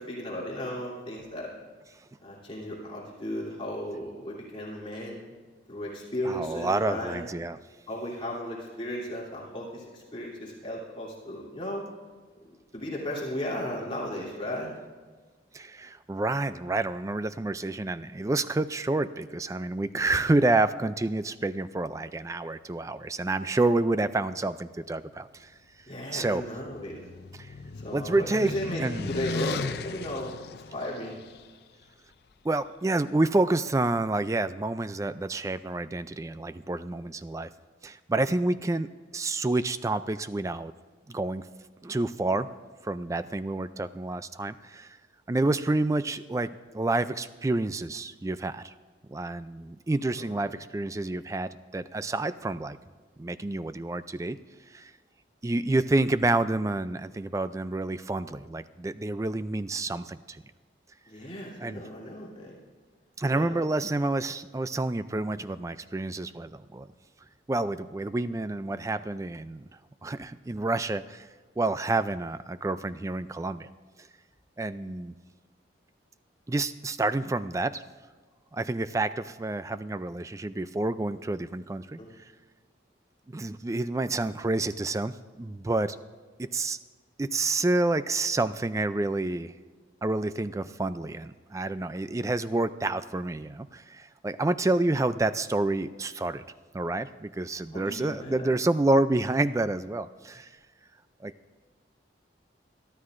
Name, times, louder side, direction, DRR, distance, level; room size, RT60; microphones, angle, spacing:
voice 1, 0.0-1.5 2.2-5.3 5.7-7.2 7.9-11.8 12.7-14.7 25.9-27.0 27.8-30.3 30.7-31.1 50.2-50.5 61.1-62.5 63.3-63.5 82.0-82.1 97.7-98.5, equal, 30° left, -6 dB, 3.1 m, -35 dB
voice 2, 6.3-7.6 15.5-25.5 26.1-26.4 27.4-27.5 27.9-29.1 32.4-37.5 37.8-38.9 39.1-40.7 41.1-41.5 41.8-42.5 42.8-45.0 45.3-46.5 46.7-48.7 49.1-52.8 53.2-54.4 54.7-54.9 55.4-60.4 61.6-61.8 63.2-66.9 67.5-69.7 70.0-71.3 71.6-73.7 74.6-75.1 76.5-77.8 78.5-82.0 83.3-86.0 86.4-86.8 87.2-89.5 90.0-96.4 96.7-100.5 101.2-101.3, right 2 dB, 15° right, 13 dB, 0.3 m, -28 dB
sound 1, 26.4-31.4, left 4 dB, 60° left, 0.5 m, -37 dB
22.5 x 12.5 x 2.6 m, 1.5 s
head